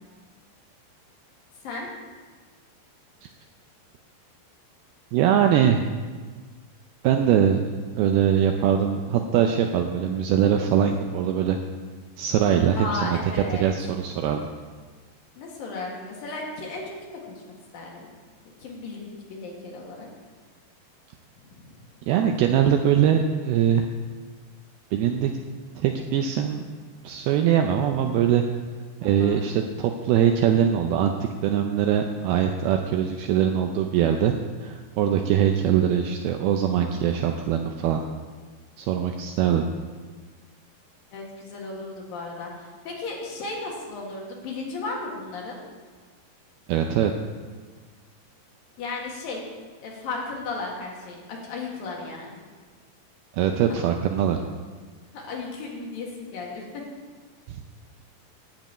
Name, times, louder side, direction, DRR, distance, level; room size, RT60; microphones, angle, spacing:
voice 1, 5.1-5.9 7.0-7.7 8.0-11.6 12.2-13.2 13.6-14.4 22.1-23.9 24.9-25.3 25.8-26.7 27.0-28.4 29.0-31.1 31.4-34.3 34.6-38.0 38.8-39.7 46.7-47.1 53.3-54.4, right 9 dB, 80° right, 4 dB, 2.2 m, -22 dB
voice 2, 12.7-13.7 15.4-17.4 17.7-18.1 18.6-20.1 21.4-21.8 29.0-29.5 33.3-33.4 41.1-45.6 48.8-49.4 49.8-52.4 55.1-56.7, left 3 dB, 60° left, -1 dB, 3.0 m, -35 dB
12.0 x 5.3 x 8.6 m, 1.5 s
omnidirectional pair, 4.9 m